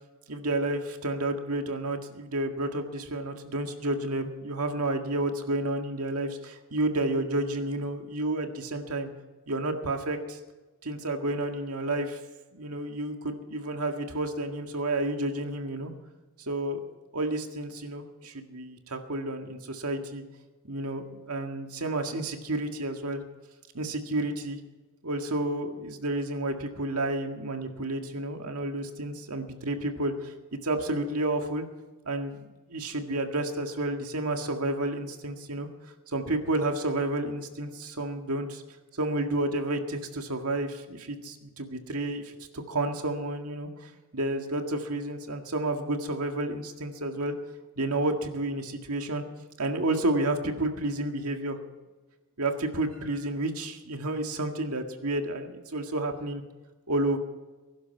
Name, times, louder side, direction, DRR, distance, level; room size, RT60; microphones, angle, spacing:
voice 1, 0.3-9.1 9.5-10.4 10.8-12.2 12.5-15.9 16.4-16.8 17.1-20.2 20.6-23.2 23.7-24.6 25.0-31.7 32.1-35.7 36.1-38.6 39.0-47.3 47.8-49.2 49.6-51.6 52.4-56.4 56.9-57.2, right 2 dB, 85° right, 4 dB, 1.9 m, -31 dB
21.0 x 12.0 x 4.6 m, 1.2 s
head